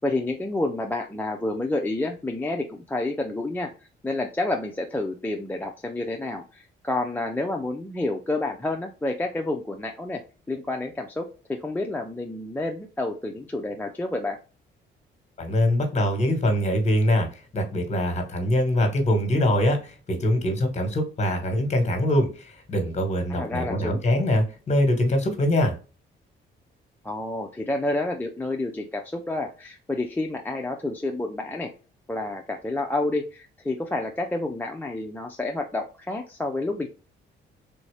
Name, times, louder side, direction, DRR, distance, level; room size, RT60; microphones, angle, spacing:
voice 1, 0.0-3.7 4.0-10.2 10.5-14.4 23.4-24.0 27.0-31.7 32.1-36.9, left 2 dB, 10° left, 0.5 m, -29 dB
voice 2, 15.4-25.7, left 1 dB, 35° left, 1.4 m, -23 dB
3.5 x 2.7 x 3.2 m
cardioid pair, 90°, 20 cm